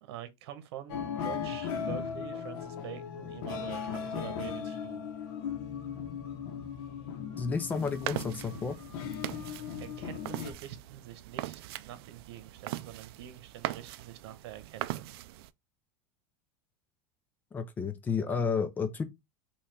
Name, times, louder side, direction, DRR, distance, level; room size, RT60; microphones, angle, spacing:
voice 1, 0.0-5.1 9.8-15.2, right 10 dB, 85° right, 1.0 m, -46 dB
sound 1, 0.9-10.5, left 7 dB, 60° left, 0.9 m, -37 dB
voice 2, 7.4-8.8 17.5-19.0, left 5 dB, 15° left, 0.5 m, -31 dB
sound 2, 7.6-15.5, right 15 dB, 70° right, 0.4 m, -41 dB
5.6 x 2.4 x 3.2 m
supercardioid pair, 175°, 13 cm